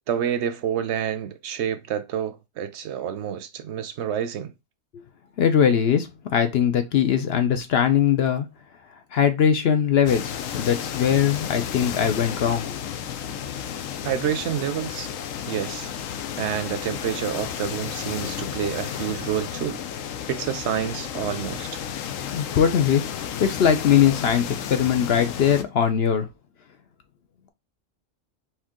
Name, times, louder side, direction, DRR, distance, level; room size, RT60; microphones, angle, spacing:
voice 1, 0.1-4.5 14.0-15.1 15.5-15.9 16.4-19.8 20.3-21.8, right 9 dB, 65° right, 0.8 m, -28 dB
voice 2, 5.4-8.5 9.1-12.7 22.3-23.0 23.4-26.3, left 8 dB, 60° left, 0.7 m, -21 dB
sound 1, 10.1-25.6, left 9 dB, 85° left, 1.0 m, -32 dB
4.4 x 2.9 x 3.6 m
omnidirectional pair, 1.3 m